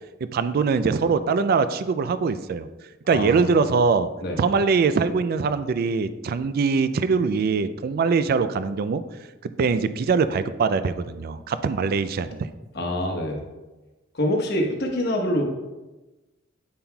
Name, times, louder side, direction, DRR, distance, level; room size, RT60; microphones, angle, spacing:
voice 1, 0.3-2.7 3.1-4.1 4.4-9.0 9.4-12.5, right 5 dB, 50° right, 12 dB, 0.3 m, -22 dB
voice 2, 3.1-3.6 4.2-4.4 12.7-13.4 14.1-15.4, left 1 dB, 55° left, 1 dB, 1.0 m, -25 dB
8.5 x 5.6 x 2.3 m, 1.1 s
head